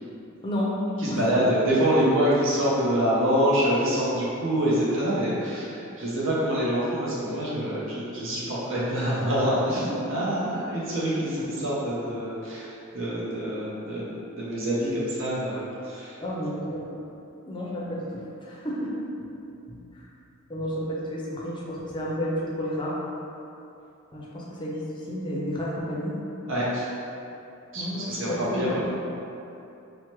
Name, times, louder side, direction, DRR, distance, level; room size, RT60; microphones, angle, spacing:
voice 1, 0.4-0.8 1.1-1.3 9.9-10.0 16.2-17.0 17.5-18.9 19.7-20.1 20.5-23.0 24.1-26.2 27.7-28.9, equal, 20° left, -5 dB, 0.5 m, -31 dB
voice 2, 1.0-16.2 26.5-26.9 27.7-29.0, equal, 60° right, -8 dB, 0.7 m, -26 dB
4.5 x 2.1 x 3.0 m, 2.8 s
head